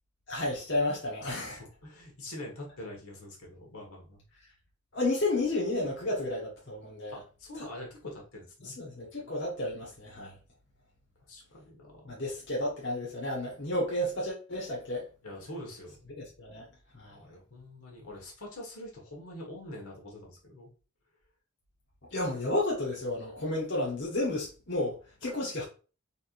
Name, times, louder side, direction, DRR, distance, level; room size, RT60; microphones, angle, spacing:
voice 1, 0.3-1.6 4.9-7.2 7.5-7.7 8.6-10.3 12.1-15.1 16.2-16.7 16.9-17.2 22.1-25.6, left 1 dB, 55° left, 1.1 m, -32 dB
voice 2, 1.2-4.2 7.1-8.7 11.3-12.2 15.2-16.1 17.1-20.7, left 1 dB, 80° left, 1.5 m, -45 dB
4.3 x 3.4 x 2.5 m
head